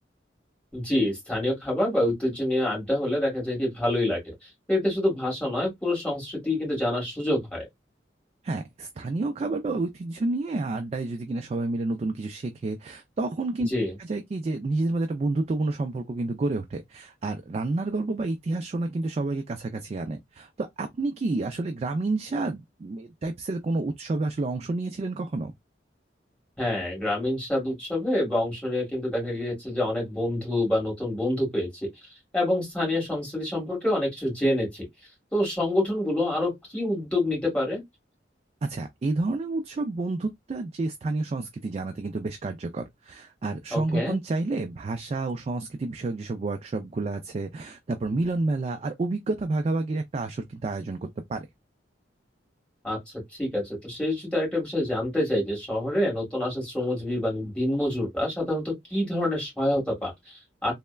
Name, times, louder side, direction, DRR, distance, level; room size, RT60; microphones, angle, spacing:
voice 1, 0.7-4.2 4.7-7.7 13.7-13.9 26.6-31.7 32.3-34.8 35.3-37.8 43.7-44.2 52.8-53.0 53.4-60.7, left 1 dB, 5° left, 1.7 m, -27 dB
voice 2, 8.4-13.7 14.0-25.5 38.6-51.5, right 2 dB, 35° right, 0.3 m, -29 dB
3.3 x 2.0 x 2.2 m
head